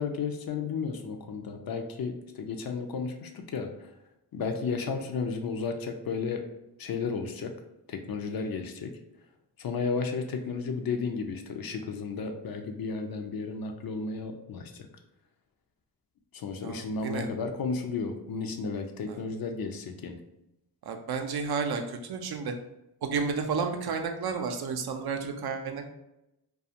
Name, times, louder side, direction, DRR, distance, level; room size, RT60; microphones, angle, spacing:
voice 1, 0.0-3.9 4.3-6.5 6.8-7.5 7.9-9.0 9.6-14.9 16.3-20.2, left 4 dB, 55° left, 5 dB, 0.5 m, -33 dB
voice 2, 16.6-17.3 19.1-19.2 20.9-22.5 23.0-25.9, right 5 dB, 60° right, 5 dB, 0.5 m, -32 dB
2.4 x 2.3 x 2.8 m, 0.88 s
supercardioid pair, 45°, 42 cm